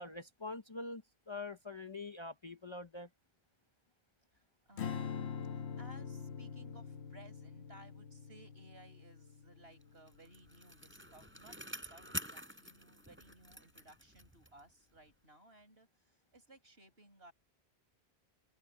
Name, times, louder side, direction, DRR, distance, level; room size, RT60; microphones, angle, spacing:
voice 1, 0.0-3.1, left 3 dB, 30° left, 0.8 m, -45 dB
voice 2, 4.3-17.3, right 1 dB, 70° right, 7.9 m, -60 dB
Strum, 4.8-11.2, left 7 dB, 90° left, 1.3 m, -44 dB
Bicycle, 9.8-14.7 15.1-15.2, right 1 dB, 10° right, 3.8 m, -47 dB
open air
omnidirectional pair, 1.1 m